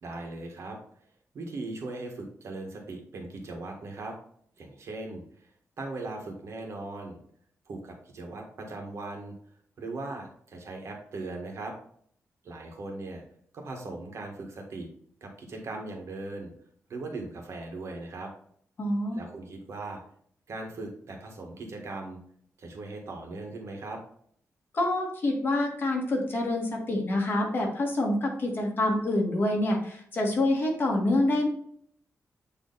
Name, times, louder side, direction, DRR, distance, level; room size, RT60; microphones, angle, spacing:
voice 1, 0.0-0.8 1.3-4.2 4.6-5.5 5.8-7.2 7.7-9.3 9.8-11.7 12.4-13.2 13.5-14.9 15.2-16.5 16.9-18.3 19.1-20.0 20.5-22.2 22.6-24.0, right 2 dB, 60° right, 2 dB, 1.6 m, -39 dB
voice 2, 18.8-19.2 24.7-31.5, left 1 dB, 40° left, 0 dB, 1.9 m, -26 dB
8.6 x 3.3 x 4.0 m, 0.63 s
wide cardioid pair, 150°, 5 cm